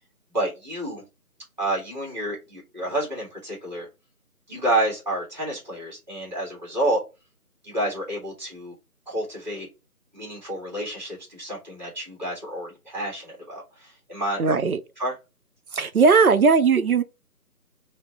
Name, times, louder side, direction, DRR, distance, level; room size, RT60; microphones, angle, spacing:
voice 1, 0.3-1.0 1.6-3.9 4.5-7.0 7.6-8.7 9.1-9.7 10.1-14.5 15.0-15.2, right 1 dB, 30° right, 1.9 m, -29 dB
voice 2, 14.4-14.8 15.7-17.0, right 5 dB, 70° right, 0.6 m, -18 dB
4.2 x 2.0 x 3.7 m
figure-of-eight pair, 160°, 46 cm